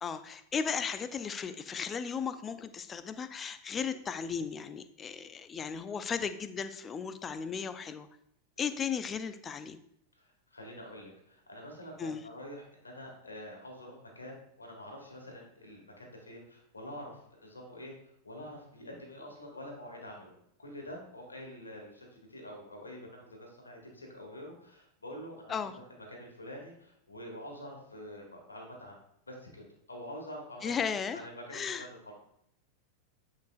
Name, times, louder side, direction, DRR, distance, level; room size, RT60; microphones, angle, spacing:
voice 1, 0.0-8.1 8.6-9.8 12.0-12.2 25.5-25.8 30.6-31.2 31.5-31.9, left 6 dB, 20° left, 12 dB, 0.5 m, -35 dB
voice 2, 10.2-18.0 18.2-20.3 20.6-29.0 29.3-32.1, equal, 75° left, 1 dB, 1.8 m, -46 dB
9.0 x 5.0 x 2.4 m, 0.75 s
figure-of-eight pair, 90°, 0 cm